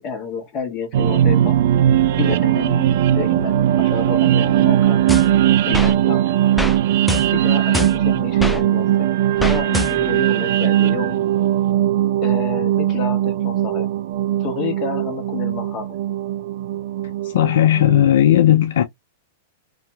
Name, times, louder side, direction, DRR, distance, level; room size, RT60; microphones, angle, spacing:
voice 1, 0.0-1.6 2.2-5.1 5.6-6.3 7.3-9.1 9.4-11.2 12.2-13.9 14.4-15.9, left 6 dB, 35° left, 1.4 m, -29 dB
sound 1, 0.9-18.1, right 12 dB, 65° right, 0.4 m, -19 dB
sound 2, 5.1-5.9 6.6-6.8 7.1-8.6 9.4-10.2, left 1 dB, 5° left, 0.4 m, -25 dB
voice 2, 17.2-18.8, left 11 dB, 75° left, 0.4 m, -15 dB
3.0 x 2.7 x 2.2 m
hypercardioid pair, 125°, 0 cm